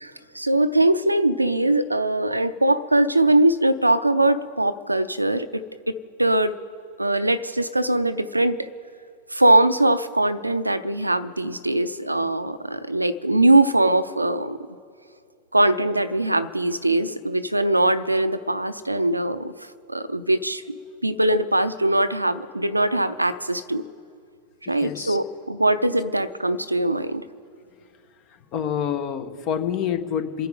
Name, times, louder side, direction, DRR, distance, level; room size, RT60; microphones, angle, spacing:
voice 1, 0.0-5.6 6.2-6.5 7.0-8.6 9.3-14.6 15.5-19.5 19.9-20.8 21.0-23.8 24.7-27.2, right 1 dB, 85° right, 13 dB, 0.5 m, -21 dB
voice 2, 24.7-25.2 28.3-30.5, left 8 dB, 40° left, 10 dB, 1.1 m, -27 dB
28.0 x 10.0 x 3.9 m, 2.4 s
figure-of-eight pair, 90°, 0 cm